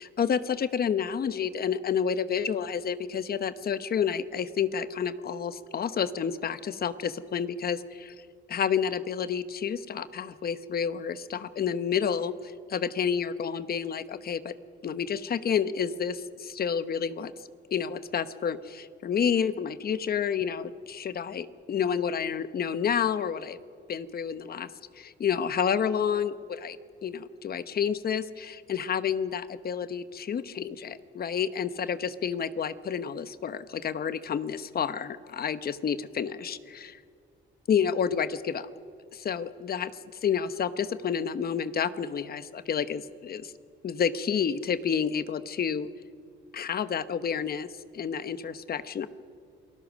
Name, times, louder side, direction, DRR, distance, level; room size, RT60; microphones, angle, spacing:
voice 1, 0.0-8.1 8.5-14.5 14.8-17.3 17.7-23.6 23.9-24.7 24.9-26.8 27.0-37.0 37.7-38.7 39.1-39.9 40.2-43.5 43.8-45.9 46.5-47.7 47.9-49.1, left 7 dB, 50° left, 13 dB, 1.0 m, -29 dB
28.0 x 19.0 x 6.3 m, 2.3 s
cardioid pair, 90°, 20 cm